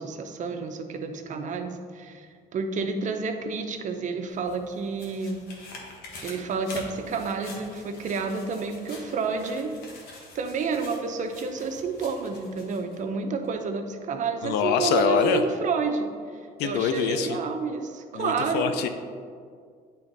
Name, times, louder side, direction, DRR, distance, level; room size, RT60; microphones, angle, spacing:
voice 1, 0.0-5.4 6.2-9.7 10.3-16.1 16.6-18.7, right 4 dB, 45° right, 5 dB, 0.7 m, -30 dB
sound 1, 4.3-13.0 13.4-13.5, left 2 dB, 70° left, 1.5 m, -46 dB
voice 2, 14.4-15.4 16.6-17.4 18.1-18.9, left 7 dB, 85° left, 8 dB, 0.5 m, -24 dB
9.2 x 3.5 x 4.0 m, 2.1 s
cardioid pair, 110°, 17 cm